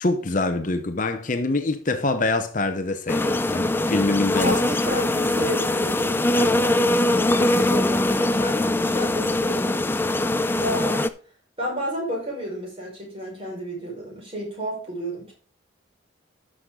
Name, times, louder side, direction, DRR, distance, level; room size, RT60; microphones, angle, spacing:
voice 1, 0.0-4.6 6.4-6.7 7.4-7.5, left 2 dB, 40° left, 0.8 m, -25 dB
sound 1, 3.1-11.1, left 1 dB, 10° left, 0.4 m, -22 dB
voice 2, 4.4-9.8 10.5-11.1 11.6-15.3, equal, 30° right, 5.2 m, -32 dB
12.0 x 6.4 x 3.8 m
head